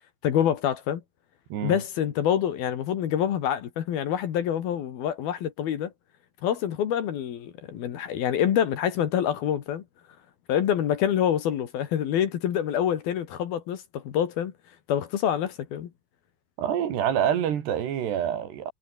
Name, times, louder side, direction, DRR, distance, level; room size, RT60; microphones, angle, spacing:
voice 1, 0.2-1.0 1.6-5.9 6.4-9.8 10.5-14.5 14.9-15.9, left 9 dB, 70° left, 3.7 m, -26 dB
voice 2, 16.6-18.7, right 9 dB, 80° right, 4.7 m, -26 dB
omnidirectional pair, 4.7 m